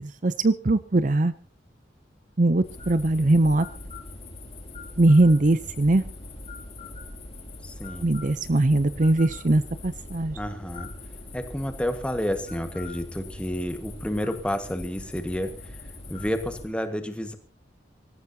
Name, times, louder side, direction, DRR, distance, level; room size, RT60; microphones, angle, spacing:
voice 1, 0.2-1.3 2.4-3.7 5.0-6.0 8.0-10.4, right 2 dB, 40° right, 14 dB, 0.6 m, -21 dB
sound 1, 2.6-16.7, left 2 dB, 35° left, 4.5 m, -41 dB
voice 2, 7.6-8.1 10.3-10.9 11.3-15.5 16.1-17.4, equal, 5° left, 7 dB, 1.6 m, -30 dB
25.0 x 14.5 x 2.8 m, 0.36 s
head